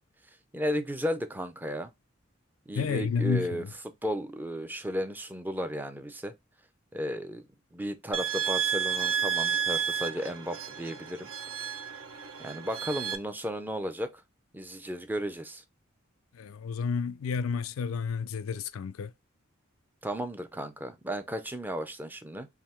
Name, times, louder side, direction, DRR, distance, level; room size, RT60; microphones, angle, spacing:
voice 1, 0.5-1.9 2.7-3.6 4.0-6.3 6.9-7.4 7.7-11.3 12.4-14.1 14.5-15.6 20.0-22.5, equal, 10° right, 0.5 m, -34 dB
voice 2, 2.7-3.7 16.4-19.1, left 5 dB, 85° left, 0.4 m, -31 dB
sound 1, 8.1-13.2, right 8 dB, 70° right, 0.8 m, -31 dB
3.6 x 2.6 x 4.3 m
head